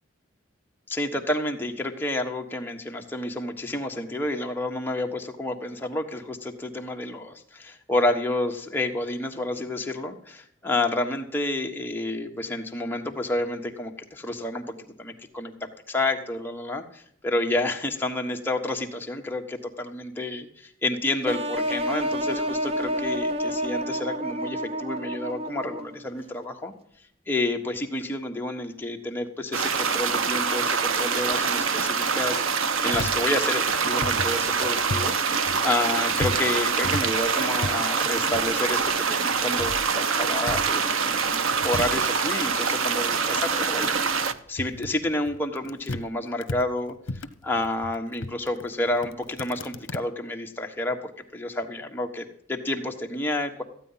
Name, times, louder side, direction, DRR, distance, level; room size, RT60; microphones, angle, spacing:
voice 1, 0.9-26.7 27.3-35.1 35.6-44.2 44.5-53.6, left 2 dB, 10° left, 2 dB, 1.3 m, -30 dB
sound 1, 21.3-26.1, equal, 30° right, 0.7 m, -29 dB
sound 2, 29.5-44.3, right 5 dB, 85° right, 0.9 m, -25 dB
sound 3, 32.9-35.2 35.4-39.0 39.3-40.9 41.1-46.1 46.4-50.0, left 2 dB, 75° left, 0.8 m, -36 dB
14.5 x 9.2 x 5.7 m, 0.67 s
head